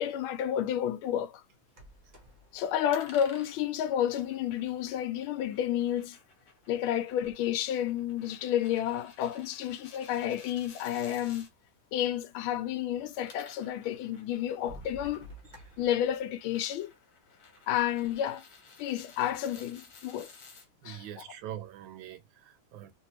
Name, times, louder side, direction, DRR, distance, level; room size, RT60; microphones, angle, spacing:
voice 1, 0.0-1.4 2.5-6.2 6.7-11.5 11.9-15.3 15.8-16.9 17.7-18.4 18.8-20.3 20.8-21.0, left 10 dB, 85° left, 1.4 m, -31 dB
sound 1, 1.7-4.0 5.0-5.1 5.7-6.9 7.5-8.4 9.2-9.3 9.4-9.5 10.2-10.3 10.5-11.3 12.9-13.0 13.6-13.7 14.4-16.2, equal, 40° right, 0.6 m, -51 dB
sound 2, 2.9-11.5 13.0-20.7, left 4 dB, 55° left, 1.3 m, -55 dB
voice 2, 20.8-22.9, right 11 dB, 80° right, 1.3 m, -43 dB
3.3 x 2.6 x 2.8 m
omnidirectional pair, 2.2 m